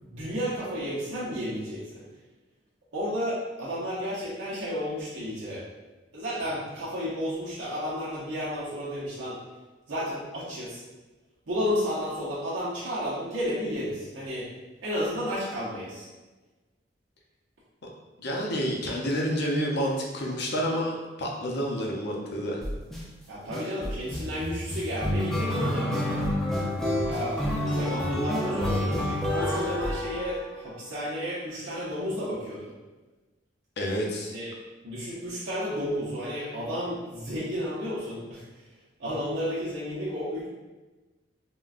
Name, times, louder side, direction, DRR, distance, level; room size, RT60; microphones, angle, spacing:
voice 1, 0.0-2.0 2.9-5.6 6.1-9.4 9.9-10.8 11.5-14.5 14.8-16.1 23.3-26.3 27.1-32.7 34.2-34.5 34.8-38.4 39.0-40.5, equal, 80° right, -8 dB, 0.7 m, -32 dB
voice 2, 18.2-22.6 27.6-27.8 33.8-34.4, equal, 60° left, 0 dB, 0.6 m, -29 dB
sound 1, 22.6-23.0 23.5-30.7, equal, ahead, 0.4 m, -28 dB
3.7 x 2.2 x 2.4 m, 1.2 s
head